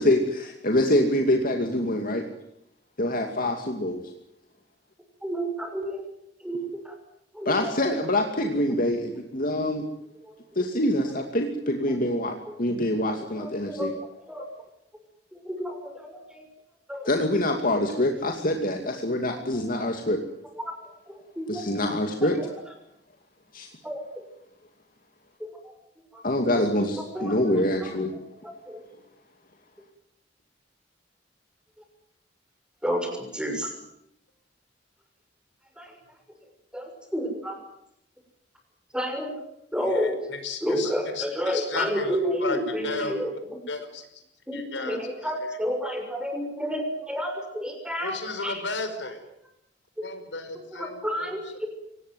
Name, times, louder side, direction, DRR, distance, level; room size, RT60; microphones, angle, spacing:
voice 1, 0.0-2.2 3.0-4.0 7.4-9.8 10.6-13.9 17.0-20.2 21.5-22.4 23.5-23.7 26.2-28.1, left 1 dB, 50° left, 3 dB, 2.5 m, -25 dB
voice 2, 5.2-6.0 6.4-6.9 7.3-7.7 10.2-10.6 13.4-13.9 14.3-14.4 15.4-16.4 16.9-17.1 20.6-20.7 21.1-21.6 23.8-24.2 25.4-25.5 26.1-26.2 27.1-27.3 28.4-28.8 32.8-33.7 35.8-35.9 36.7-37.6 38.9-39.3 39.7-40.2 40.6-43.6 44.5-48.6 50.7-51.7, equal, 5° right, 4 dB, 6.5 m, -30 dB
voice 3, 39.9-42.6 42.8-43.4 43.7-44.2 44.5-45.5 48.0-49.2 50.0-51.4, left 3 dB, 85° left, 8 dB, 5.2 m, -34 dB
24.5 x 19.5 x 9.4 m, 0.78 s
head